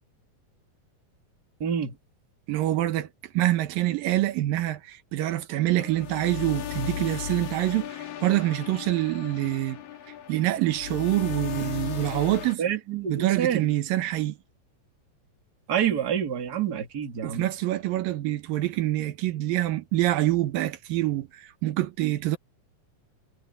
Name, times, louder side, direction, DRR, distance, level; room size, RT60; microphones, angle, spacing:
voice 1, 1.6-2.0 12.6-13.7 15.7-17.5, right 9 dB, 30° right, 2.3 m, -27 dB
voice 2, 2.5-3.1 3.3-9.8 10.3-12.6 13.1-14.4 17.2-22.4, right 15 dB, 85° right, 2.9 m, -26 dB
sound 1, 5.8-12.6, left 9 dB, 85° left, 4.0 m, -36 dB
omnidirectional pair, 3.9 m